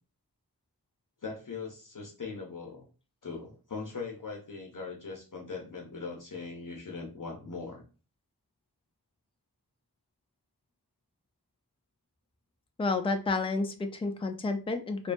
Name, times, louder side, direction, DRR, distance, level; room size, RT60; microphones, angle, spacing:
voice 1, 1.2-2.9 3.2-7.8, left 4 dB, 50° left, 0 dB, 0.6 m, -40 dB
voice 2, 12.8-15.1, left 3 dB, 15° left, 5 dB, 0.3 m, -30 dB
2.6 x 2.2 x 2.5 m, 0.35 s
wide cardioid pair, 45°, 40 cm